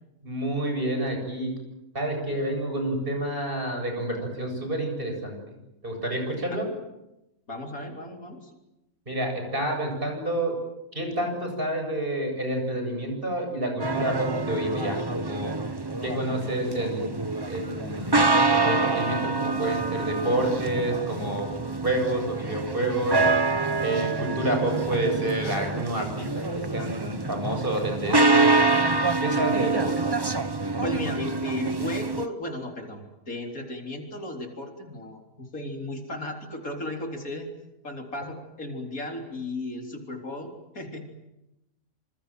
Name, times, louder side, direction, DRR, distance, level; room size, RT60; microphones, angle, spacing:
voice 1, 0.2-1.5 1.9-5.6 5.8-6.7 9.1-10.6 10.9-15.5 16.0-17.1 17.5-18.3 18.6-23.2 23.8-28.6 29.2-29.9, right 1 dB, 40° right, 3 dB, 8.2 m, -29 dB
voice 2, 7.5-8.5 29.9-30.0 30.8-37.5 37.8-41.1, left 1 dB, 75° left, 3 dB, 4.2 m, -35 dB
sound 1, 13.8-32.3, right 3 dB, 20° right, 1.1 m, -26 dB
27.0 x 27.0 x 7.7 m, 0.91 s
omnidirectional pair, 1.5 m